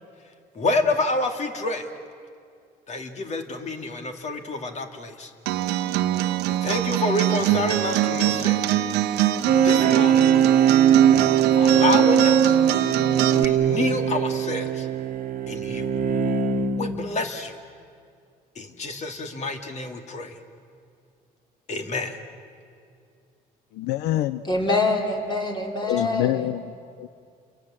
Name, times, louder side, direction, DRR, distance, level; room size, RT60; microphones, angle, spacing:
voice 1, 0.5-1.9 2.9-5.3 6.5-8.7 9.6-10.3 11.6-12.6 13.3-14.9 15.5-15.9 16.8-17.5 18.6-20.3 21.7-22.2, left 2 dB, 45° left, 5 dB, 2.5 m, -28 dB
Acoustic guitar, 5.5-13.4, right 12 dB, 90° right, 1.0 m, -24 dB
sound 1, 9.5-17.1, right 8 dB, 55° right, 1.4 m, -20 dB
voice 2, 23.7-24.4 25.9-26.7 27.0-27.1, left 14 dB, 85° left, 13 dB, 0.7 m, -25 dB
voice 3, 24.4-26.4, left 2 dB, 25° left, 2 dB, 3.9 m, -25 dB
29.5 x 22.5 x 7.8 m, 2.2 s
cardioid pair, 110°, 17 cm